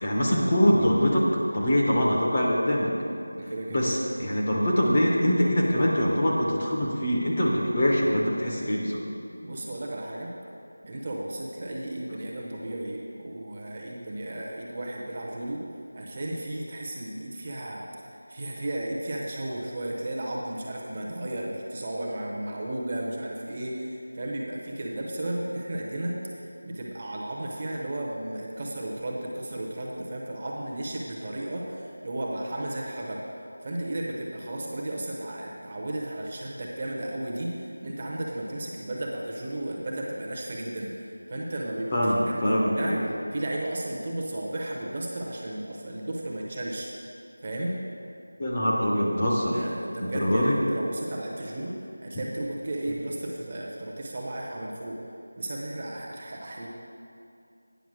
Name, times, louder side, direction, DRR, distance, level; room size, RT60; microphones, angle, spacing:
voice 1, 0.0-1.3 1.5-2.9 3.7-9.0 41.9-43.0 48.4-49.6 50.0-50.6, equal, 20° left, -3 dB, 0.7 m, -23 dB
voice 2, 3.3-3.9 9.4-10.3 10.9-15.6 16.0-26.1 26.6-33.3 33.6-43.0 43.3-46.9 47.4-47.7 49.5-55.0 55.4-56.7, right 1 dB, 20° right, -3 dB, 0.8 m, -34 dB
9.1 x 5.7 x 6.2 m, 2.5 s
figure-of-eight pair, 180°, 0 cm